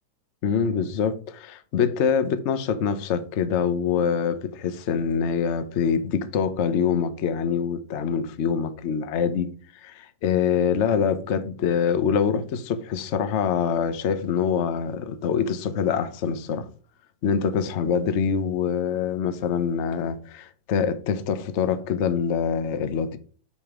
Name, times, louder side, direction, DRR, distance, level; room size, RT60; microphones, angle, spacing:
voice 1, 0.4-9.5 9.8-16.7 17.2-23.2, left 7 dB, 55° left, 0.8 m, -25 dB
8.9 x 5.3 x 3.7 m
omnidirectional pair, 2.1 m